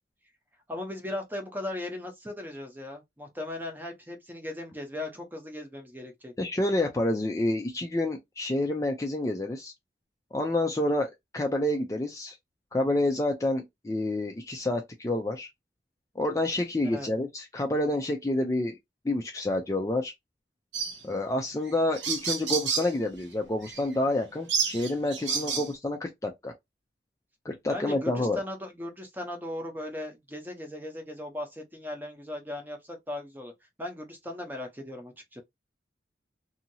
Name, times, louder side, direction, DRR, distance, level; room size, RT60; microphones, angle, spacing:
voice 1, 0.7-6.3 16.8-17.1 25.2-25.7 27.7-33.5 33.8-35.4, left 1 dB, 10° right, 0.8 m, -38 dB
voice 2, 6.4-9.7 10.3-12.4 12.7-15.5 16.2-18.8 19.0-20.1 21.0-26.5 27.4-28.4, left 1 dB, 20° left, 0.4 m, -28 dB
sound 1, 20.7-21.0 21.7-21.8 21.9-22.9 23.6-23.8 24.5-25.7, right 6 dB, 85° right, 0.8 m, -30 dB
2.8 x 2.7 x 2.7 m
head